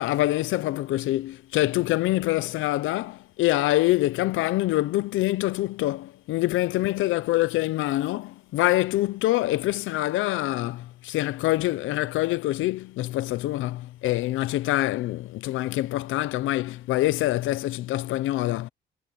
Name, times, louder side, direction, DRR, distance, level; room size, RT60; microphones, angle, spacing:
voice 1, 0.0-18.7, left 17 dB, 85° left, 0.6 m, -25 dB
cardioid pair, 90°, 20 cm